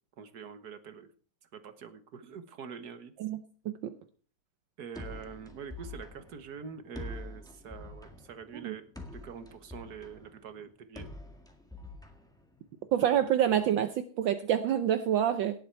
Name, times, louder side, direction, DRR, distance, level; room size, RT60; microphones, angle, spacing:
voice 1, 0.2-1.1 1.5-3.1 4.8-8.8 9.1-11.1, right 6 dB, 50° right, 10 dB, 1.5 m, -45 dB
voice 2, 3.6-4.0 8.6-8.8 12.9-15.6, right 10 dB, 70° right, 9 dB, 1.3 m, -27 dB
sound 1, 4.9-12.9, left 2 dB, ahead, 1.5 m, -46 dB
18.0 x 7.9 x 4.5 m, 0.42 s
omnidirectional pair, 2.4 m